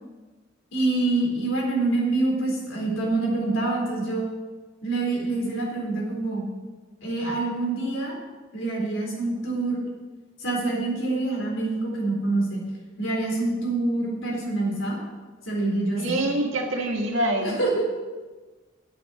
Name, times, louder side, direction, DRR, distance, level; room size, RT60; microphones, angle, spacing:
voice 1, 0.7-4.3 4.8-6.5 7.0-8.2 8.5-9.8 10.4-12.6 13.0-15.0 15.4-16.1 17.4-17.8, right 2 dB, 80° left, -2 dB, 4.0 m, -26 dB
voice 2, 16.0-17.6, right 1 dB, 75° right, 1 dB, 1.9 m, -25 dB
8.6 x 8.4 x 7.3 m, 1.3 s
head